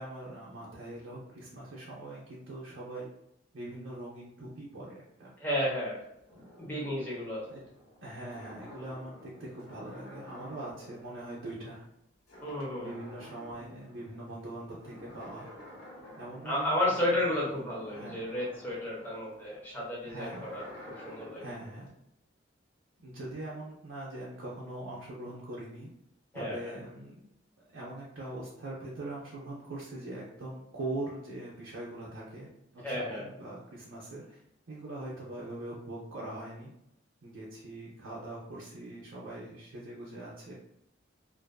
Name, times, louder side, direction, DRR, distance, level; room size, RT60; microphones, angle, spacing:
voice 1, 0.0-3.1 3.5-5.3 7.5-7.6 8.0-11.8 12.8-15.5 16.2-16.8 17.1-17.2 17.5-17.6 17.9-18.2 20.0-20.5 21.4-21.9 23.0-25.9 26.3-27.2 27.7-34.4 34.7-36.7 37.2-40.5, right 1 dB, 75° right, -6 dB, 0.6 m, -42 dB
voice 2, 5.4-6.0 6.4-7.5 12.4-12.9 16.4-20.6 21.0-21.5 26.3-26.6 32.8-33.3, left 1 dB, 10° left, -5 dB, 0.8 m, -32 dB
sound 1, 5.6-12.0 12.3-14.3 14.7-21.9, left 1 dB, 85° left, 1.2 m, -51 dB
2.5 x 2.4 x 2.2 m, 0.80 s
head